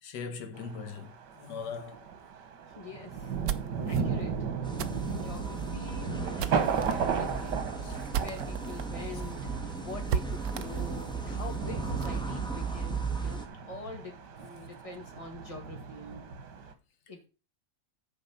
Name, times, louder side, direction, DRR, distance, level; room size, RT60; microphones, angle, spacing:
voice 1, 0.0-2.1 7.8-8.1, left 5 dB, 85° left, 1.7 m, -40 dB
Thunder, 0.5-16.7, right 6 dB, 85° right, 1.8 m, -36 dB
voice 2, 2.7-3.4 3.9-4.4 5.1-7.7 8.2-9.5 9.8-16.3 17.1-17.3, left 3 dB, 20° left, 1.9 m, -45 dB
sound 1, 3.2-8.8 9.2-9.3 9.6-9.7 10.1-12.2, right 9 dB, 70° right, 1.0 m, -37 dB
sound 2, 4.6-13.5, right 4 dB, 5° left, 1.0 m, -36 dB
7.0 x 5.0 x 6.9 m
omnidirectional pair, 1.8 m